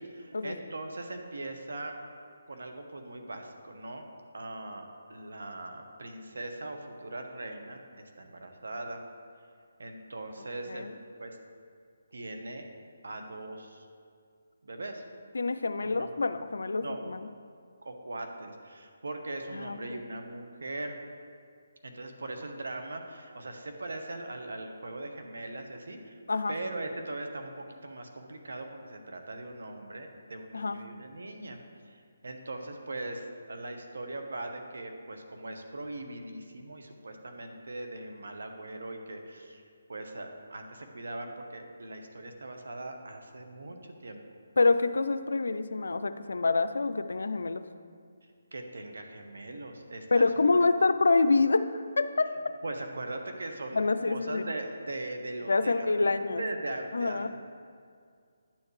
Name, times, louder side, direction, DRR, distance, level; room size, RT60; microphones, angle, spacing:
voice 1, 0.0-2.0 2.5-4.1 4.3-9.0 9.8-10.9 11.2-11.4 12.1-12.7 13.0-13.9 14.6-15.0 15.8-16.1 16.8-17.1 17.8-21.0 21.8-26.2 26.5-31.6 31.8-39.6 39.9-44.2 48.5-50.3 52.6-57.3, right 2 dB, 80° right, 4 dB, 1.1 m, -40 dB
voice 2, 15.3-17.3 19.5-20.1 26.3-26.6 30.5-30.8 44.6-47.6 50.1-52.5 53.7-54.4 55.5-56.4 56.9-57.3, left 3 dB, 80° left, 11 dB, 0.5 m, -27 dB
11.0 x 7.2 x 3.2 m, 2.2 s
hypercardioid pair, 160°, 0 cm